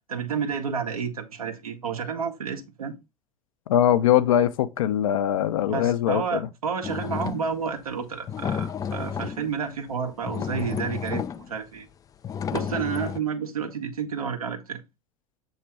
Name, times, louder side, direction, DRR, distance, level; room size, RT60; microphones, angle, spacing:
voice 1, 0.1-2.9 5.7-11.9 12.5-14.8, right 6 dB, 85° right, 1.4 m, -30 dB
voice 2, 3.7-6.5, left 11 dB, 70° left, 0.7 m, -22 dB
sound 1, 6.8-7.7 8.2-9.5 10.0-10.1 10.3-11.5 12.2-13.2, left 7 dB, 20° left, 0.3 m, -31 dB
7.5 x 3.2 x 4.5 m
figure-of-eight pair, 80°, 18 cm